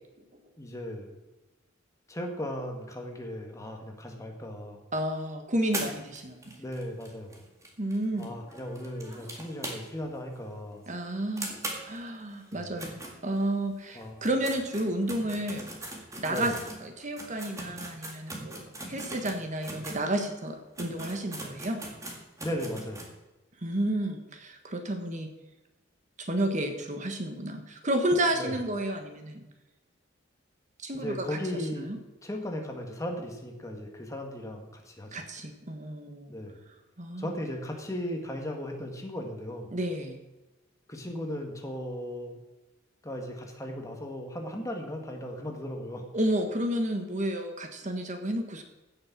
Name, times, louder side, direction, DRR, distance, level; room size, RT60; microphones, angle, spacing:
voice 1, 0.6-1.1 2.1-4.8 6.6-7.5 8.2-10.8 12.5-12.7 13.9-14.3 16.3-16.5 22.4-23.1 28.3-28.6 30.9-31.9 32.2-35.2 36.3-36.6 37.2-39.7 40.9-42.4 43.0-46.0, left 1 dB, 15° left, 2 dB, 1.7 m, -37 dB
voice 2, 4.9-6.6 7.8-8.3 10.9-11.5 11.8-15.7 16.2-16.5 16.8-21.8 23.6-25.3 26.2-29.4 30.8-31.4 31.7-32.0 35.1-36.3 37.0-37.3 39.7-40.2 46.1-48.6, right 1 dB, 40° right, 5 dB, 1.4 m, -31 dB
sound 1, 5.7-10.1 10.4-10.5 10.8-10.9 11.4-13.7 14.1-20.0 20.5-20.6 20.8-23.1, right 2 dB, 15° right, 1.9 m, -40 dB
15.5 x 6.6 x 6.0 m, 1.1 s
head